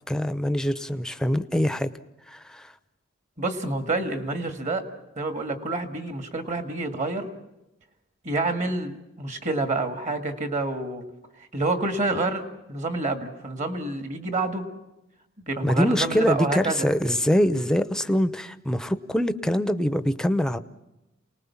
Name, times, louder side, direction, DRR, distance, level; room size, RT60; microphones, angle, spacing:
voice 1, 0.1-1.9 2.3-2.7 15.6-20.6, equal, 5° left, 12 dB, 0.8 m, -24 dB
voice 2, 3.4-4.8 5.2-7.3 8.2-11.0 11.5-12.4 12.7-14.7 15.5-16.9, right 2 dB, 40° right, 7 dB, 2.2 m, -28 dB
28.5 x 19.5 x 7.3 m, 0.93 s
head